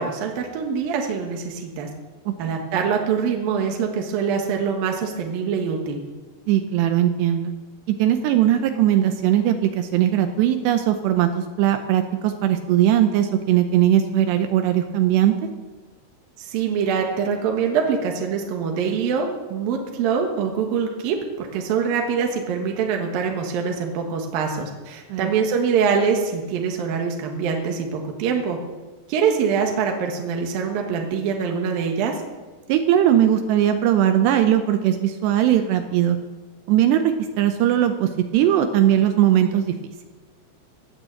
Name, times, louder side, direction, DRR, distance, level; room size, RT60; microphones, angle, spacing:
voice 1, 0.0-1.9 2.4-6.0 16.4-28.6 29.1-32.2, right 6 dB, 65° right, 2 dB, 2.8 m, -24 dB
voice 2, 6.5-7.5 8.0-15.3 25.1-25.3 32.7-36.2 36.7-39.7, right 11 dB, 80° right, 7 dB, 2.9 m, -19 dB
18.0 x 9.4 x 7.8 m, 1.3 s
omnidirectional pair, 5.0 m